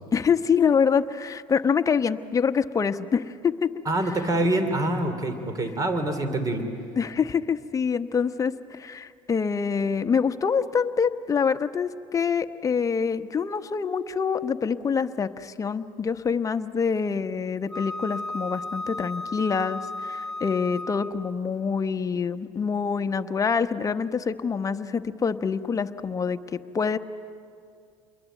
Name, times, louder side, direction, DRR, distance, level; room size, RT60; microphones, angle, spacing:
voice 1, 0.1-3.7 7.0-27.0, left 6 dB, 25° left, 9 dB, 1.1 m, -26 dB
voice 2, 3.8-6.7, right 1 dB, 30° right, 9 dB, 3.0 m, -25 dB
Wind instrument woodwind instrument, 17.7-21.3, left 2 dB, ahead, 1.1 m, -34 dB
28.5 x 22.0 x 9.2 m, 2.3 s
supercardioid pair, 95°, 12 cm